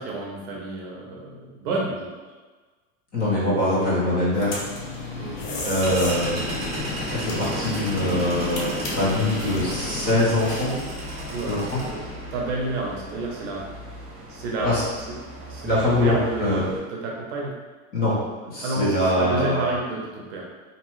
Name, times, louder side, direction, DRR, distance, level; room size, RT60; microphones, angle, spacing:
voice 1, 0.0-2.2 5.2-5.4 11.3-12.0 12.3-13.7 14.3-14.7 15.5-17.5 18.6-20.5, right 2 dB, 50° right, -2 dB, 0.7 m, -30 dB
voice 2, 3.1-4.6 5.6-6.5 7.1-10.8 11.4-11.8 14.6-14.8 15.6-16.6 17.9-18.2 18.4-19.7, left 1 dB, 20° left, -8 dB, 0.7 m, -23 dB
sound 1, 4.3-10.8, left 2 dB, 75° left, 0.8 m, -34 dB
sound 2, 4.6-16.8, equal, 15° right, 0.5 m, -34 dB
2.7 x 2.2 x 3.0 m, 1.3 s
supercardioid pair, 155°, 41 cm